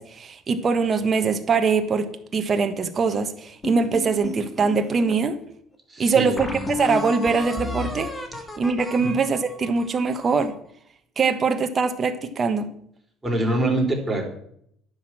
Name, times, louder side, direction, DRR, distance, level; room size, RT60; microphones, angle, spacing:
voice 1, 0.0-5.4 6.0-8.1 8.6-10.5 11.2-12.7, right 4 dB, 35° right, 8 dB, 1.3 m, -22 dB
sound 1, 3.6-5.2 5.7-5.8 6.4-10.6, left 2 dB, 15° left, 2.1 m, -33 dB
voice 2, 5.9-6.7 9.0-9.2 13.2-14.2, right 1 dB, 15° right, -1 dB, 4.3 m, -25 dB
10.0 x 6.7 x 7.4 m, 0.69 s
supercardioid pair, 90°, 0 cm